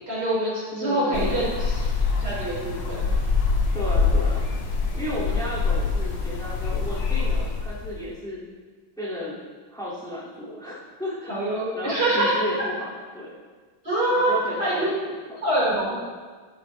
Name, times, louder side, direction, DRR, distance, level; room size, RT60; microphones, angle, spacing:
voice 1, 0.0-1.9 2.2-3.0 11.3-12.3 13.8-14.3 14.6-14.9 15.4-16.0, right 1 dB, 50° right, -7 dB, 4.2 m, -25 dB
voice 2, 0.7-1.4 3.7-4.5 4.9-8.4 9.0-9.4 9.7-13.3 14.1-15.2 15.8-16.0, left 1 dB, ahead, -11 dB, 3.8 m, -33 dB
sound 1, 1.1-8.0, left 4 dB, 60° left, 1.8 m, -25 dB
13.5 x 12.0 x 2.9 m, 1.5 s
omnidirectional pair, 2.3 m